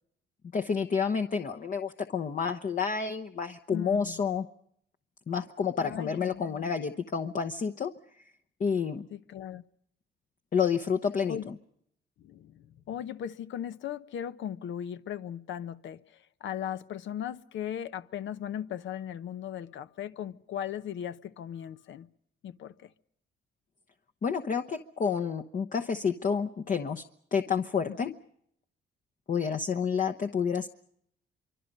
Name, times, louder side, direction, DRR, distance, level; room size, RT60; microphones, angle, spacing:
voice 1, 0.5-4.5 5.3-7.9 8.6-9.1 10.5-11.5 24.2-27.0 27.3-28.1 29.3-30.7, left 6 dB, 40° left, 1.0 m, -29 dB
voice 2, 3.7-4.2 5.8-6.7 9.1-9.6 11.3-11.5 12.2-22.1 22.4-22.9 27.9-28.1, left 10 dB, 70° left, 0.9 m, -38 dB
25.0 x 24.5 x 5.4 m
cardioid pair, 90°, 20 cm